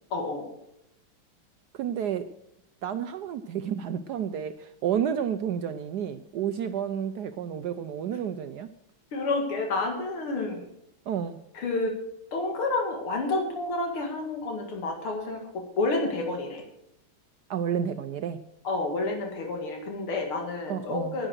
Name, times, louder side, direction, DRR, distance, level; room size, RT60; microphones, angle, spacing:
voice 1, 0.1-0.5 9.1-10.7 11.5-11.9 12.3-16.6 18.6-21.3, left 2 dB, 85° left, 3 dB, 2.9 m, -29 dB
voice 2, 1.7-2.3 2.8-8.7 11.1-11.4 17.5-18.4 20.7-21.2, right 8 dB, 70° right, 10 dB, 0.9 m, -30 dB
10.0 x 10.0 x 6.3 m, 0.80 s
omnidirectional pair, 2.3 m